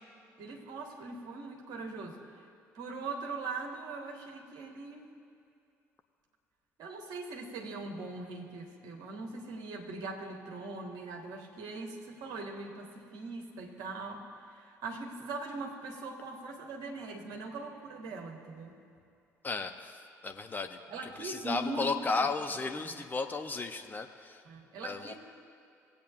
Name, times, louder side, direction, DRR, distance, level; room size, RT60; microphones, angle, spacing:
voice 1, 0.4-2.5 2.7-5.1 6.8-18.8 20.9-22.3 22.8-23.0 24.5-25.2, right 3 dB, 55° right, 1 dB, 1.6 m, -41 dB
voice 2, 19.4-20.8 21.2-24.4 24.8-25.2, left 3 dB, 20° left, 5 dB, 0.9 m, -34 dB
20.0 x 8.5 x 2.6 m, 2.5 s
figure-of-eight pair, 50°, 8 cm